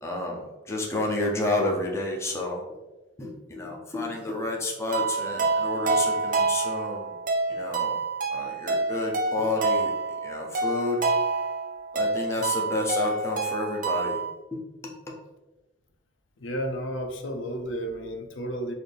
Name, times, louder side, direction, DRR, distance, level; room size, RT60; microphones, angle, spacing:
voice 1, 0.0-2.6 3.2-7.1 7.5-8.0 8.3-9.9 10.2-11.0 11.9-14.2, left 2 dB, 15° left, -1 dB, 0.5 m, -30 dB
sound 1, 4.9-14.3, right 3 dB, 45° right, 0.5 m, -27 dB
voice 2, 16.4-18.7, equal, 85° left, 4 dB, 0.6 m, -32 dB
4.1 x 2.6 x 3.3 m, 1.1 s
head